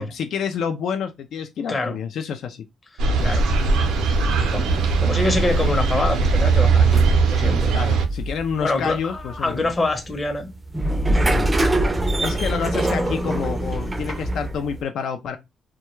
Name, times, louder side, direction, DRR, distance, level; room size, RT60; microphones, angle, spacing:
voice 1, 0.0-2.7 4.3-4.6 7.7-9.7 11.2-11.5 12.2-15.4, left 7 dB, 70° left, 0.3 m, -28 dB
sound 1, 3.0-8.0, right 4 dB, 85° right, 0.5 m, -19 dB
sound 2, 3.1-14.8, right 1 dB, 20° right, 0.4 m, -26 dB
voice 2, 4.5-7.7 8.6-10.5 11.1-11.3, left 2 dB, 25° left, 0.7 m, -25 dB
2.2 x 2.2 x 3.0 m
cardioid pair, 90°, 0 cm